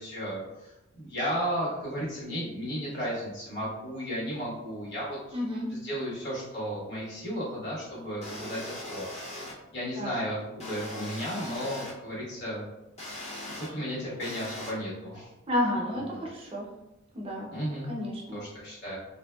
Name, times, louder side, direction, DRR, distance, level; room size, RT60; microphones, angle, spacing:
voice 1, 0.0-5.4 5.7-9.0 9.3-12.6 13.6-15.3 16.1-16.2 17.5-17.9 18.3-19.0, equal, 60° left, -7 dB, 1.4 m, -34 dB
voice 2, 5.3-5.7 10.0-10.1 15.5-16.7 17.1-17.5 17.9-18.4, left 1 dB, 30° right, -2 dB, 0.5 m, -31 dB
sound 1, 8.2-9.5 10.6-11.9 13.0-13.7 14.2-14.7, left 1 dB, 35° left, 0.6 m, -39 dB
3.2 x 2.6 x 2.2 m, 0.95 s
head